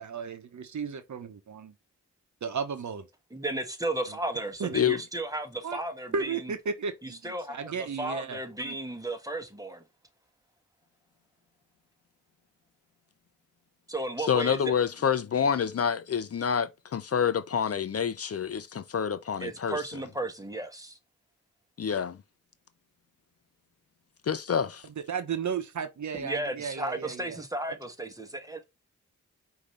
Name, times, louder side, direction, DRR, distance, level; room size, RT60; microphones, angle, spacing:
voice 1, 0.0-1.7 2.4-3.1 4.6-4.8 5.6-5.8 6.1-8.8 25.1-27.4, right 6 dB, 70° right, 0.8 m, -34 dB
voice 2, 3.3-6.5 7.0-7.7 8.0-9.8 13.9-14.6 19.4-21.0 26.2-28.6, right 2 dB, 10° right, 1.3 m, -34 dB
voice 3, 14.2-19.8 21.8-22.2 24.2-24.9, left 7 dB, 50° left, 0.5 m, -27 dB
5.1 x 2.8 x 3.1 m
cardioid pair, 45°, 30 cm